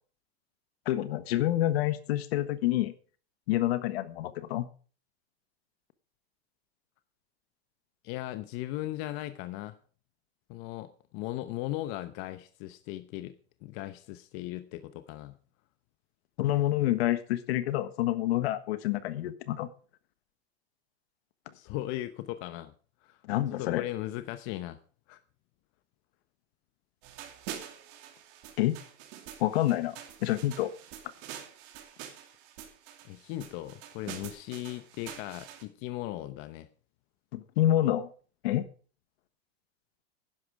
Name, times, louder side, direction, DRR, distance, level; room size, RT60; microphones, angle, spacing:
voice 1, 0.8-2.9 3.5-4.7 16.4-19.7 23.2-23.8 28.6-28.8 29.4-30.0 30.2-30.7 37.3-38.1 38.4-38.7, left 14 dB, 70° left, 12 dB, 1.5 m, -27 dB
voice 2, 8.0-9.7 10.5-13.3 13.6-15.4 21.5-22.7 23.0-23.2 23.5-24.8 25.1-25.2 33.0-36.7, left 15 dB, 45° left, 11 dB, 0.9 m, -38 dB
sound 1, 27.0-35.6, right 10 dB, 50° right, 2.7 m, -46 dB
11.5 x 11.0 x 4.8 m, 0.39 s
supercardioid pair, 140°, 32 cm